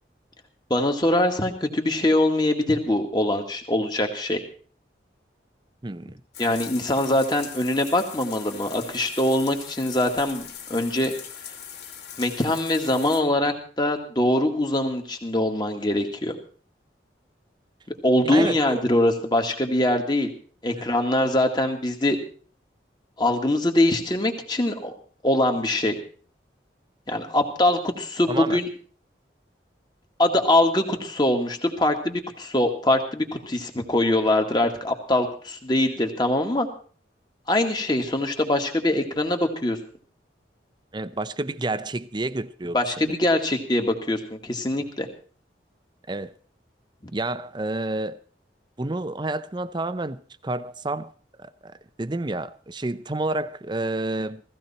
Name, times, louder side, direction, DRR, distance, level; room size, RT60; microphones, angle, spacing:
voice 1, 0.7-4.4 6.4-10.4 10.7-11.1 12.2-16.3 18.0-20.3 20.6-22.2 23.2-24.9 25.2-26.0 27.1-28.7 30.2-36.7 37.5-39.8 42.7-45.1, left 1 dB, 25° left, 1.9 m, -23 dB
voice 2, 5.8-6.2 18.2-18.8 28.3-28.6 40.9-43.1 46.1-46.3 47.1-48.2 48.8-51.1 51.4-54.4, right 2 dB, 25° right, 0.6 m, -30 dB
sound 1, 6.3-13.2, left 8 dB, 65° left, 2.4 m, -40 dB
16.5 x 15.5 x 4.3 m
head